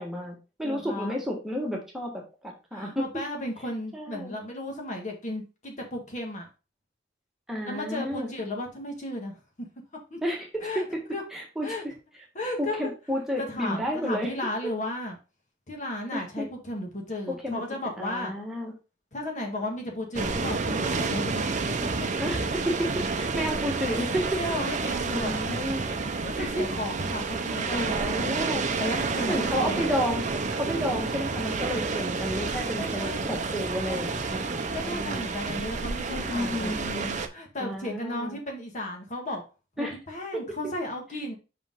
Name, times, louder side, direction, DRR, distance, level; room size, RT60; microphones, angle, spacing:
voice 1, 0.0-3.0 3.9-4.3 7.5-8.3 10.2-10.8 11.3-11.9 12.6-14.3 14.6-14.7 16.1-16.5 17.3-17.6 18.0-18.7 22.2-24.4 24.8-25.8 26.4-26.6 27.7-28.7 29.3-35.2 36.1-37.1 37.6-38.4 39.8-40.0 40.3-40.5, equal, ahead, -2 dB, 1.6 m, -31 dB
voice 2, 0.6-1.2 2.7-6.5 7.7-9.7 10.1-10.2 10.6-10.8 11.1-11.2 11.6-11.8 12.4-12.8 13.4-15.2 15.7-18.3 19.1-22.1 24.3-25.4 26.2-28.3 28.8-30.0 32.8-33.4 33.9-34.1 34.7-37.0 37.3-39.4 39.8-41.4, left 1 dB, 40° left, 1 dB, 1.7 m, -34 dB
sound 1, 20.1-37.3, right 4 dB, 40° right, 0.7 m, -30 dB
5.6 x 5.1 x 3.6 m, 0.30 s
head